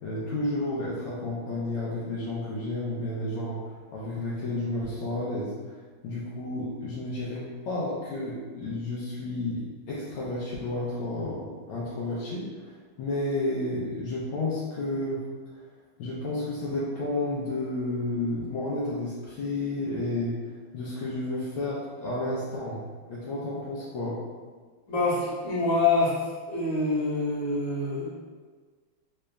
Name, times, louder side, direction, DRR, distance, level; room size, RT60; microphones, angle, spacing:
voice 1, 0.0-3.6 3.9-5.8 6.0-9.6 9.9-12.7 13.0-15.2 16.0-20.3 20.7-22.8 23.1-24.2, left 2 dB, 80° left, -8 dB, 1.5 m, -31 dB
voice 2, 24.9-26.1 26.5-28.1, left 3 dB, 65° left, -8 dB, 1.9 m, -25 dB
3.9 x 3.2 x 2.3 m, 1.5 s
omnidirectional pair, 2.3 m